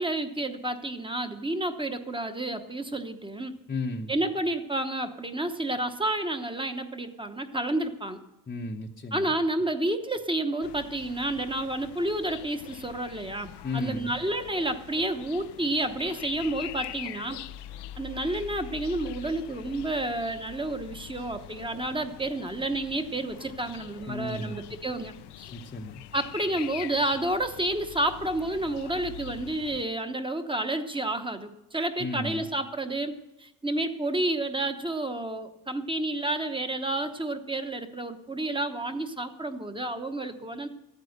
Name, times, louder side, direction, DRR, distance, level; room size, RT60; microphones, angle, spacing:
voice 1, 0.0-3.5 4.1-8.2 9.1-17.4 18.0-25.5 26.1-33.1 33.4-40.7, right 1 dB, 15° right, 7 dB, 1.0 m, -30 dB
voice 2, 3.7-4.1 8.5-9.3 13.6-14.1 24.1-24.6 25.5-26.0 32.0-32.4, left 2 dB, 25° left, 0 dB, 0.8 m, -34 dB
sound 1, 10.6-29.8, left 13 dB, 85° left, 0.6 m, -44 dB
14.0 x 9.3 x 6.6 m, 0.97 s
cardioid pair, 115°, 39 cm